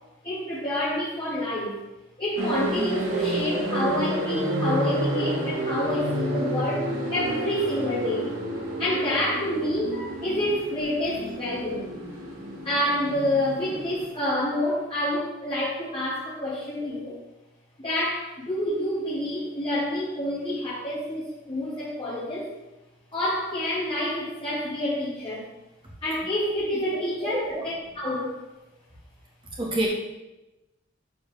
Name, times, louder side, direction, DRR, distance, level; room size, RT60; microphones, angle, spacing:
voice 1, 0.2-1.8 2.2-8.3 8.8-11.9 12.6-17.2 17.8-22.5 23.1-25.5 26.0-27.5 28.0-28.4, left 1 dB, 25° left, -11 dB, 2.2 m, -28 dB
sound 1, 2.4-14.1, right 1 dB, 75° right, 2.8 m, -30 dB
voice 2, 26.9-27.6 29.6-29.9, right 1 dB, 25° right, -3 dB, 1.9 m, -29 dB
12.0 x 4.3 x 3.6 m, 1.0 s
head